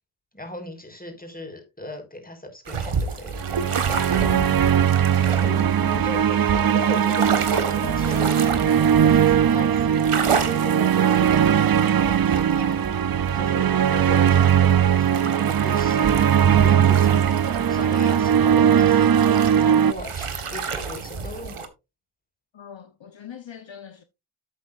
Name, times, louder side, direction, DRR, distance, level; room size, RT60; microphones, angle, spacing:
voice 1, 0.3-3.5 5.4-13.0 13.3-21.7, left 1 dB, 15° left, 4.4 m, -38 dB
sound 1, 2.7-21.7, right 5 dB, 80° right, 1.6 m, -31 dB
sound 2, 3.4-19.9, right 9 dB, 45° right, 0.5 m, -19 dB
voice 2, 4.2-4.9 22.5-24.0, left 9 dB, 60° left, 1.0 m, -42 dB
12.0 x 8.5 x 2.5 m
wide cardioid pair, 60°, 50 cm